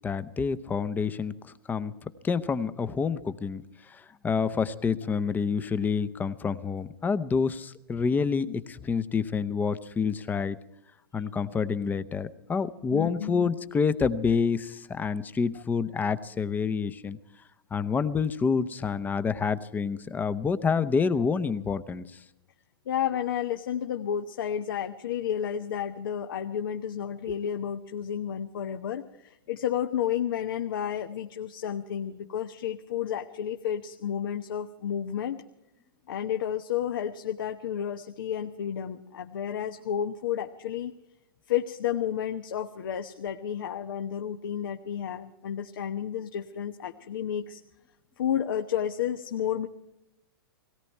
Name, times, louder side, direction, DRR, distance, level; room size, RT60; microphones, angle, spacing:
voice 1, 0.0-1.9 2.2-10.6 11.1-17.2 17.7-22.1, left 5 dB, 15° left, 14 dB, 0.7 m, -28 dB
voice 2, 12.9-13.5 15.5-15.6 22.9-35.4 36.1-40.9 41.5-47.6 48.2-49.7, left 9 dB, 70° left, 7 dB, 0.9 m, -31 dB
18.0 x 18.0 x 4.4 m, 0.86 s
hypercardioid pair, 115°, 12 cm